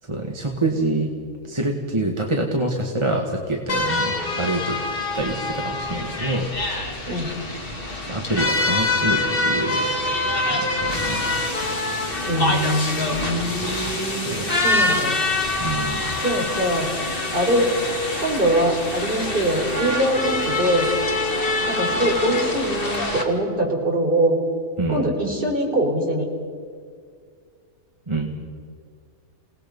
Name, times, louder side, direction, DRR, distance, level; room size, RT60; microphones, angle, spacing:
voice 1, 0.1-1.1 1.4-4.8 5.1-6.5 8.0-9.9 10.4-11.3 14.1-14.5 15.6-16.1 24.8-25.1 28.1-28.3, right 2 dB, 20° right, 1 dB, 1.7 m, -26 dB
sound 1, 3.7-23.2, left 2 dB, 40° left, 2.5 m, -25 dB
voice 2, 12.3-15.2 16.2-16.9 17.3-17.7 18.2-20.9 21.7-24.4 24.9-26.2, right 1 dB, 35° right, 0 dB, 4.1 m, -23 dB
28.5 x 19.0 x 5.4 m, 2.1 s
omnidirectional pair, 1.5 m